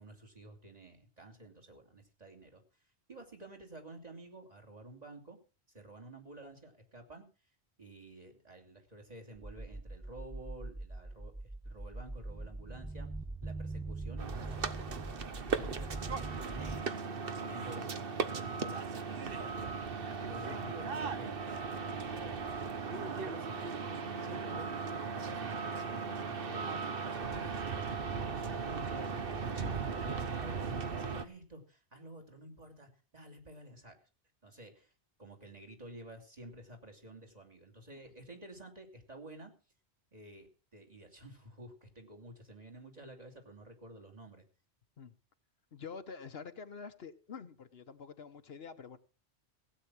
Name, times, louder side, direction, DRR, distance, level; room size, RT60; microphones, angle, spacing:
voice 1, 0.0-2.6 3.1-5.4 5.7-7.2 7.8-11.3 11.6-13.1 13.4-16.9 17.4-18.0 18.4-22.4 22.9-24.7 25.0-29.1 29.8-33.9 34.4-34.9 35.2-39.5 40.1-44.4, right 2 dB, 35° right, 3.0 m, -51 dB
sound 1, 9.4-16.8, right 2 dB, 5° right, 0.5 m, -42 dB
sound 2, 14.2-31.2, right 5 dB, 55° right, 1.1 m, -37 dB
voice 2, 45.7-49.0, left 5 dB, 65° left, 1.2 m, -47 dB
16.5 x 8.7 x 6.0 m
omnidirectional pair, 1.2 m